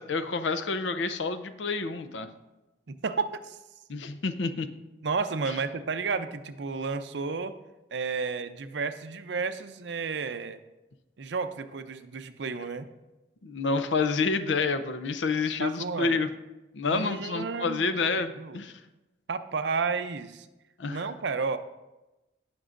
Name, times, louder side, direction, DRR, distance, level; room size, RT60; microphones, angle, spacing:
voice 1, 0.0-2.3 3.9-4.7 13.4-16.3 16.7-18.7 20.8-21.1, left 4 dB, 90° left, 11 dB, 0.6 m, -28 dB
voice 2, 2.9-3.6 5.0-7.6 7.9-10.6 11.2-12.9 15.6-16.2 16.8-17.8 18.2-18.6 19.3-20.5 20.9-21.6, right 4 dB, 75° right, 10 dB, 0.6 m, -32 dB
17.5 x 6.1 x 2.5 m, 1.0 s
head